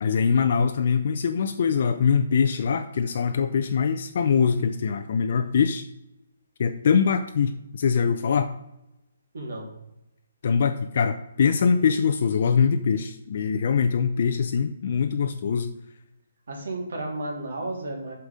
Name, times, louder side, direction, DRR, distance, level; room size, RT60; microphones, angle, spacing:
voice 1, 0.0-5.8 6.6-8.5 10.4-15.7, left 6 dB, 45° left, 7 dB, 0.5 m, -23 dB
voice 2, 9.3-9.7 16.5-18.1, right 2 dB, 75° right, 0 dB, 3.2 m, -32 dB
8.2 x 5.8 x 5.0 m, 0.89 s
hypercardioid pair, 170°, 0 cm